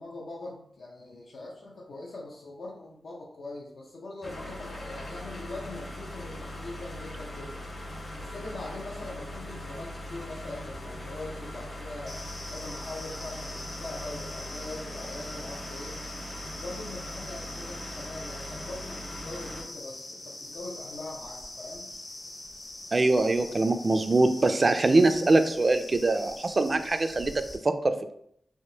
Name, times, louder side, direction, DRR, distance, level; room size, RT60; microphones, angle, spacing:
voice 1, 0.0-7.7 8.2-12.2 12.5-16.0 16.6-21.9, left 2 dB, 85° left, -3 dB, 0.5 m, -42 dB
sound 1, 4.2-19.6, left 1 dB, 60° left, 1.4 m, -40 dB
sound 2, 12.1-27.6, left 1 dB, 35° left, 0.7 m, -43 dB
voice 2, 22.9-28.1, right 2 dB, 40° right, 9 dB, 0.3 m, -23 dB
3.5 x 2.7 x 2.7 m, 0.69 s
wide cardioid pair, 85°, 0 cm